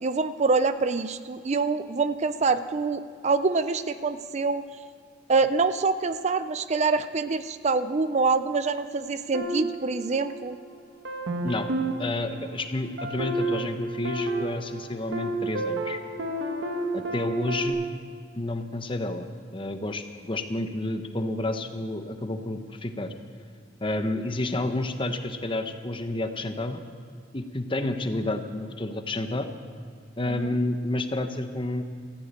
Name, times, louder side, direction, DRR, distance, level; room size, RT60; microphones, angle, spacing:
voice 1, 0.0-4.6 5.3-10.6 30.3-30.5, right 4 dB, 40° right, 12 dB, 0.5 m, -25 dB
sound 1, 9.3-10.6 11.0-17.7, right 2 dB, 75° right, 1.6 m, -31 dB
voice 2, 12.0-16.0 16.9-17.8 18.4-19.3 19.5-23.1 23.8-26.8 27.3-29.5 30.2-31.8, left 2 dB, 30° left, 7 dB, 1.0 m, -30 dB
14.5 x 11.0 x 8.9 m, 2.1 s
head